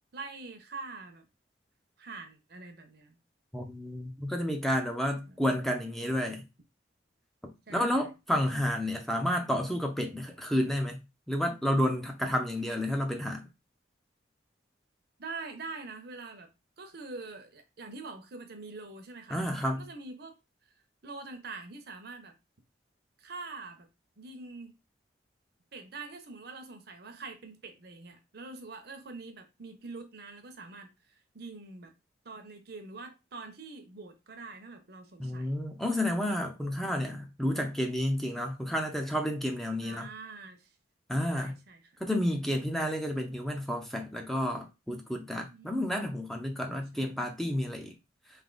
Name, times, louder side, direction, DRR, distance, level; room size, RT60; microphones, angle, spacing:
voice 1, 0.1-1.3 2.0-3.2 5.2-5.4 7.7-8.1 15.2-16.5 16.8-19.4 19.8-20.3 21.0-22.3 23.2-23.9 24.2-24.8 25.7-31.9 32.2-35.6 39.8-40.7 41.3-41.9 45.5-45.9 46.9-47.2, right 3 dB, 60° right, 0.8 m, -45 dB
voice 2, 3.5-6.4 7.4-11.0 11.3-13.4 19.3-19.9 35.2-40.1 41.1-41.6 42.0-47.9, equal, ahead, 0.6 m, -30 dB
3.4 x 2.8 x 3.8 m
head